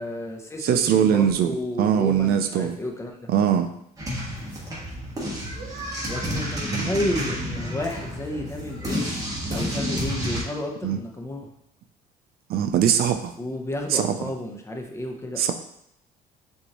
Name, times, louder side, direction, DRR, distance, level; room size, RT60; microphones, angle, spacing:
voice 1, 0.0-3.3 6.1-9.2 9.5-11.5 13.4-15.4, left 1 dB, 15° left, 2 dB, 0.8 m, -31 dB
voice 2, 0.6-1.5 1.8-2.8 3.3-3.7 6.7-6.9 10.8-11.0 12.5-13.3 13.9-14.3 15.4-15.5, right 9 dB, 65° right, 8 dB, 0.4 m, -21 dB
sound 1, 4.0-10.4, equal, 20° right, 1.4 m, -30 dB
6.2 x 2.6 x 3.0 m, 0.74 s
cardioid pair, 110°, 17 cm